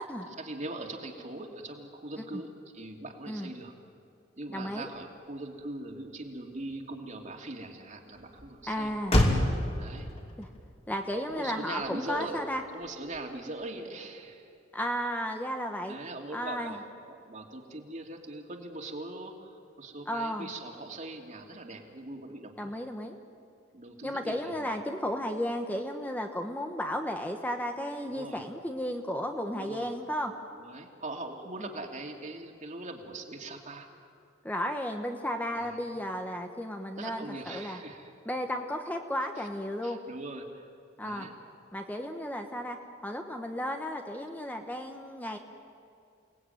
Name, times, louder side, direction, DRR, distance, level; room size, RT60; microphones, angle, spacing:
voice 1, 0.4-3.7 4.4-8.9 9.8-10.1 11.3-12.4 12.7-14.5 15.8-16.8 17.1-22.8 23.7-24.8 28.0-28.4 29.6-29.9 30.6-33.9 35.5-35.9 37.0-38.1 39.4-39.5 39.8-40.7 41.0-41.3, right 2 dB, 40° right, 2 dB, 2.6 m, -41 dB
voice 2, 4.5-4.9 8.7-9.2 10.4-10.5 10.9-12.6 14.7-16.0 16.3-16.8 20.1-20.5 22.6-23.2 24.0-30.3 31.6-31.7 34.4-37.8 38.2-40.0 41.0-41.3 41.7-42.8 43.0-45.4, equal, 10° left, 4 dB, 1.1 m, -34 dB
Motor vehicle (road), 4.9-13.6, left 1 dB, 30° left, 2.8 m, -33 dB
29.0 x 19.0 x 9.2 m, 2.4 s
head